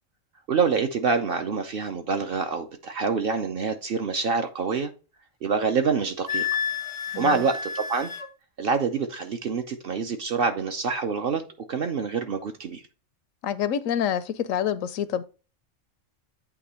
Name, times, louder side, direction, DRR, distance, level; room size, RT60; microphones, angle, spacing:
voice 1, 0.5-4.9 5.4-6.5 7.2-8.1 8.6-11.4 11.7-12.8, right 5 dB, 55° right, 0.7 m, -26 dB
Wind instrument woodwind instrument, 6.3-8.3, left 7 dB, 40° left, 0.5 m, -30 dB
voice 2, 7.1-7.4 13.4-15.2, left 9 dB, 85° left, 1.0 m, -27 dB
8.5 x 2.9 x 4.2 m
omnidirectional pair, 1.3 m